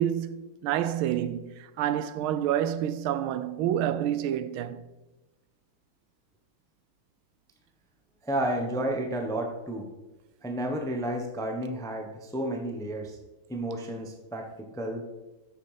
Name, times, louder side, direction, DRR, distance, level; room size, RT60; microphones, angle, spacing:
voice 1, 0.0-4.8, right 10 dB, 80° right, 1.4 m, -28 dB
voice 2, 8.2-9.9 10.4-13.2 13.5-15.0, right 1 dB, 5° left, 0.5 m, -31 dB
9.4 x 6.7 x 5.0 m
omnidirectional pair, 2.3 m